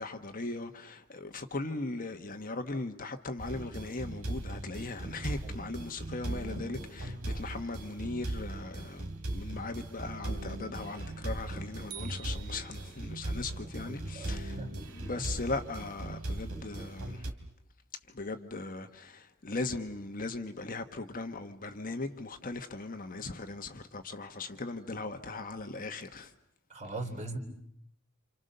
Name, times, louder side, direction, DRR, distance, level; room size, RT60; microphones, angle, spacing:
voice 1, 0.0-14.6 14.9-17.3 18.1-26.3, left 3 dB, 40° left, 1.3 m, -39 dB
sound 1, 3.4-17.3, right 1 dB, 75° right, 3.0 m, -39 dB
sound 2, 11.9-13.3, right 11 dB, 50° right, 1.8 m, -48 dB
voice 2, 13.6-14.7 26.7-27.4, right 2 dB, 30° right, 3.9 m, -40 dB
29.5 x 27.5 x 6.7 m
head